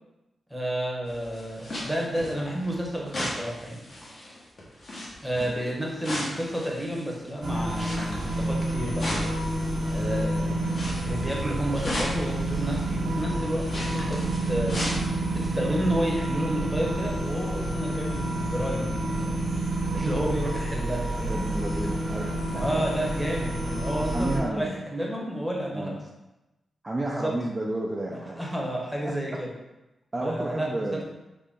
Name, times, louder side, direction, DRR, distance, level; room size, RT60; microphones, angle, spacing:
voice 1, 0.5-3.8 5.2-9.3 9.9-14.2 14.5-14.8 15.3-19.4 19.9-21.5 22.5-26.0 27.1-27.3 28.1-29.5 30.2-31.0, right 1 dB, ahead, -2 dB, 0.9 m, -31 dB
sound 1, 1.1-10.2 10.6-15.6 15.9-16.0, left 1 dB, 50° left, 1.0 m, -37 dB
voice 2, 5.4-5.7 21.2-22.8 24.1-24.7 25.7-26.0 26.8-28.4 29.0-29.4 30.1-31.0, right 1 dB, 25° right, -2 dB, 0.4 m, -32 dB
sound 2, 7.4-24.4, right 1 dB, 70° right, 1.0 m, -29 dB
3.9 x 2.1 x 3.5 m, 0.99 s
cardioid pair, 75°, 0 cm